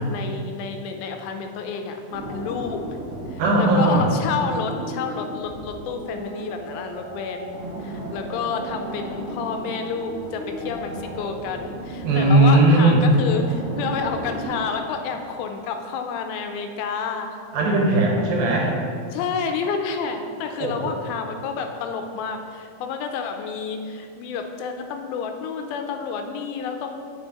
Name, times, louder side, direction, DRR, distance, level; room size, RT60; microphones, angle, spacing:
voice 1, 0.0-2.8 3.3-17.4 19.1-27.0, left 5 dB, 85° left, 5 dB, 2.4 m, -30 dB
sound 1, 2.1-14.6, right 1 dB, 60° right, 3.3 m, -35 dB
voice 2, 3.4-4.1 12.0-13.0 17.5-18.7 20.6-20.9, right 2 dB, 75° right, -2 dB, 2.9 m, -18 dB
8.9 x 5.8 x 2.9 m, 2.4 s
omnidirectional pair, 4.2 m